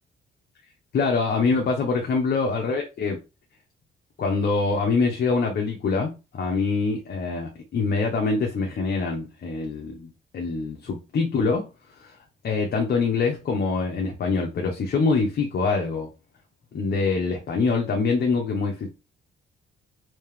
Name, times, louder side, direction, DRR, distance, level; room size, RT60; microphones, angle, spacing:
voice 1, 0.9-3.2 4.2-10.1 10.3-11.6 12.0-12.1 12.4-16.1 16.7-18.9, left 4 dB, 55° left, 0.8 m, -24 dB
3.2 x 2.8 x 3.4 m
cardioid pair, 90°, 20 cm